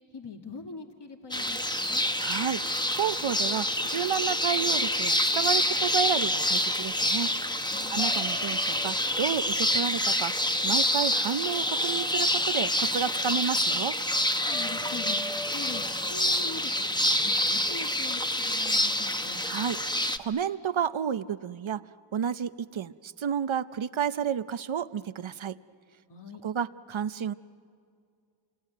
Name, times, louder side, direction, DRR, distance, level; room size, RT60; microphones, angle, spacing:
voice 1, 0.1-2.1 7.6-8.0 14.4-15.2 15.5-15.8 16.1-19.4 26.1-26.4, left 4 dB, 55° left, 3 dB, 1.8 m, -42 dB
sound 1, 1.3-20.2, left 1 dB, 10° left, 1.0 m, -27 dB
voice 2, 2.2-7.3 7.9-10.3 10.6-14.0 19.5-19.8 20.2-21.8 22.1-25.6 26.4-27.3, right 8 dB, 70° right, 14 dB, 0.7 m, -31 dB
28.0 x 22.5 x 9.2 m, 2.3 s
wide cardioid pair, 45°, 49 cm